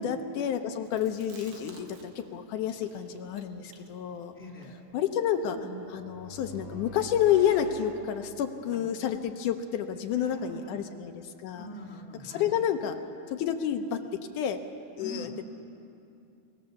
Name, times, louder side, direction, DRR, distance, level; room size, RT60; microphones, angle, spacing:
voice 1, 0.0-4.3 4.9-5.6 5.9-11.7 12.3-13.0 13.3-14.0 14.4-14.6 15.0-15.4, left 9 dB, 85° left, 5 dB, 2.4 m, -29 dB
Chewing mastication, 0.9-2.3 2.6-6.0, right 5 dB, 80° right, 3.4 m, -48 dB
voice 2, 4.3-4.8 9.9-10.8 11.5-12.5 15.0-15.3, left 1 dB, 5° left, -1 dB, 3.1 m, -43 dB
sound 1, 5.7-8.7, right 3 dB, 50° right, 4.8 m, -46 dB
23.5 x 20.0 x 7.1 m, 2.7 s
omnidirectional pair, 3.6 m